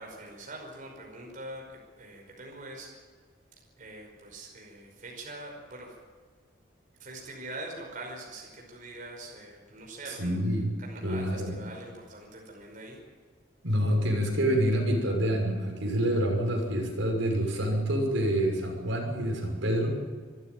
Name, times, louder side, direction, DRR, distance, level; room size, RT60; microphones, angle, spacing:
voice 1, 0.0-1.6 2.0-2.9 3.8-6.0 7.0-10.4 10.8-13.0, right 2 dB, 40° right, 0 dB, 5.4 m, -43 dB
voice 2, 10.1-10.7 11.0-11.6 13.6-19.9, right 1 dB, 75° right, 1 dB, 6.3 m, -27 dB
26.5 x 15.0 x 9.2 m, 1.5 s
head